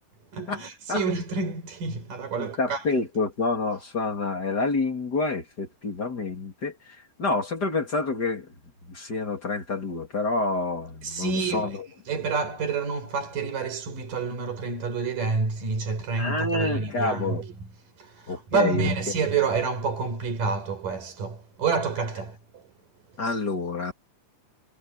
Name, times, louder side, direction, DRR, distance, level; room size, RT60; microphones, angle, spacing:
voice 1, 0.3-2.8 11.0-11.7 12.1-17.5 18.0-22.4, right 4 dB, 75° right, 6.9 m, -28 dB
voice 2, 2.4-8.5 8.9-11.9 16.2-17.4 18.3-18.9 23.2-23.9, left 3 dB, 30° left, 3.0 m, -28 dB
omnidirectional pair, 3.9 m